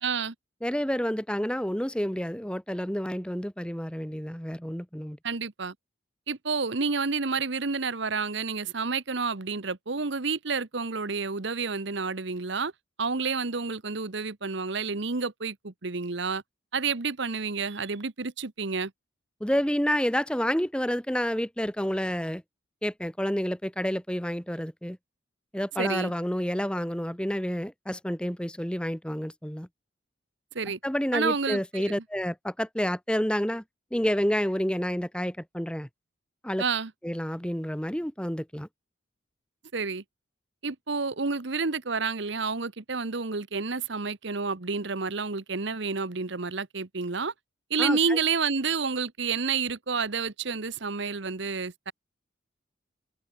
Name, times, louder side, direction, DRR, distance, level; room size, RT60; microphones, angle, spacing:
voice 1, 0.0-0.3 5.2-5.7 6.3-12.7 13.0-16.4 16.7-18.9 25.8-26.1 30.5-30.8 31.1-31.9 36.6-36.9 39.7-40.0 40.6-47.3 47.7-51.9, right 4 dB, 65° right, 1.1 m, -29 dB
voice 2, 0.6-5.2 19.4-22.4 22.8-25.0 25.5-29.7 30.8-33.6 33.9-35.9 36.4-36.6 37.0-38.7 47.8-48.2, equal, 5° left, 1.3 m, -29 dB
head